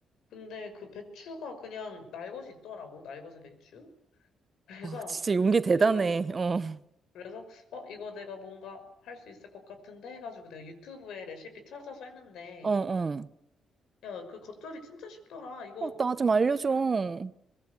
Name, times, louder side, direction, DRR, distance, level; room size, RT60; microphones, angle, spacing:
voice 1, 0.3-3.9 4.7-5.3 5.8-6.1 7.1-12.8 14.0-16.0 16.4-16.8, left 4 dB, 90° left, 5.9 m, -43 dB
voice 2, 5.3-6.8 12.6-13.3 15.8-17.3, right 4 dB, 30° right, 0.9 m, -26 dB
24.0 x 21.5 x 8.2 m
cardioid pair, 140°, 0 cm